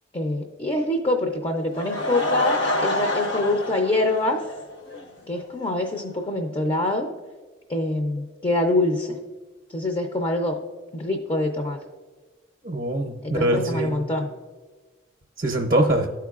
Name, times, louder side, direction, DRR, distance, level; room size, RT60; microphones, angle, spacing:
voice 1, 0.1-4.4 5.3-7.1 7.7-9.2 9.7-10.6 10.9-11.8 13.2-14.3, left 2 dB, 25° left, 3 dB, 0.5 m, -25 dB
Laughter / Crowd, 1.6-5.0 5.3-5.4 6.0-6.1 6.3-6.4, left 1 dB, 65° left, 0.8 m, -27 dB
voice 2, 12.6-14.0 15.4-16.1, right 1 dB, 40° right, 2 dB, 0.6 m, -23 dB
13.0 x 4.6 x 2.4 m, 1.3 s
head